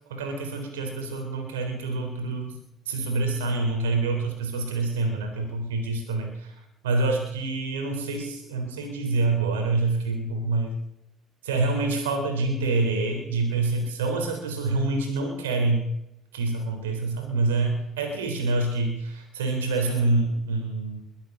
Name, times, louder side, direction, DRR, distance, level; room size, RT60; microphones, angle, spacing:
voice 1, 0.1-2.6 2.9-6.5 6.8-10.8 11.4-15.9 16.3-21.0, right 3 dB, 90° right, 4 dB, 3.7 m, -26 dB
22.5 x 8.8 x 6.6 m, 0.82 s
hypercardioid pair, 60°, 0 cm